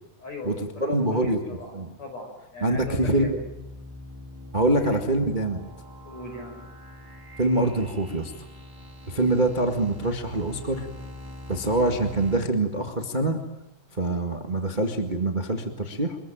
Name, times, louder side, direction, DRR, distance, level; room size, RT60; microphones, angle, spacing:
voice 1, 0.2-3.4 4.8-5.0 6.0-6.6, left 2 dB, 40° left, 2 dB, 6.3 m, -39 dB
voice 2, 0.8-1.4 1.7-1.9 2.6-3.4 4.5-5.6 7.4-8.3 9.1-10.9 11.5-13.4 14.0-16.2, right 2 dB, 70° right, 4 dB, 0.4 m, -24 dB
sound 1, 2.7-12.4, left 1 dB, 10° right, 1.7 m, -43 dB
26.0 x 21.5 x 9.1 m, 0.94 s
omnidirectional pair, 4.6 m